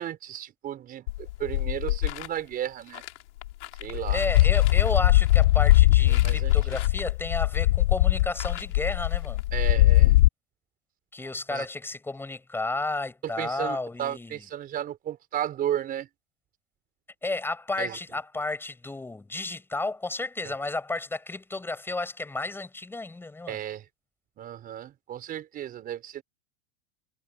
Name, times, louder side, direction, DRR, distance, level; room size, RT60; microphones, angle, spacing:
voice 1, 0.0-3.0 3.8-4.2 6.1-6.5 9.5-10.1 11.2-11.6 13.2-16.1 17.8-18.0 20.4-20.5 23.5-23.9 24.4-26.2, right 11 dB, 25° right, 4.6 m, -34 dB
sound 1, 1.1-2.3 3.0-3.1 3.4-10.3, left 17 dB, 80° left, 4.4 m, -21 dB
voice 2, 3.9-9.4 11.1-14.4 17.2-23.6, left 2 dB, 5° left, 7.3 m, -32 dB
supercardioid pair, 165°, 34 cm